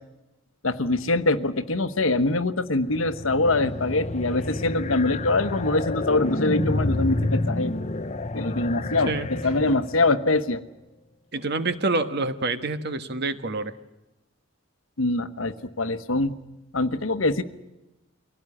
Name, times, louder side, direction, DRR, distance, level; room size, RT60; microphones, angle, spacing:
voice 1, 0.6-7.7 8.3-10.6 15.0-16.4 16.7-17.4, left 2 dB, 90° left, 10 dB, 1.2 m, -24 dB
sound 1, 2.7-10.2, left 2 dB, 35° left, 0.8 m, -29 dB
voice 2, 11.3-13.7, right 3 dB, 55° right, 10 dB, 1.4 m, -27 dB
24.0 x 17.0 x 9.9 m, 0.99 s
head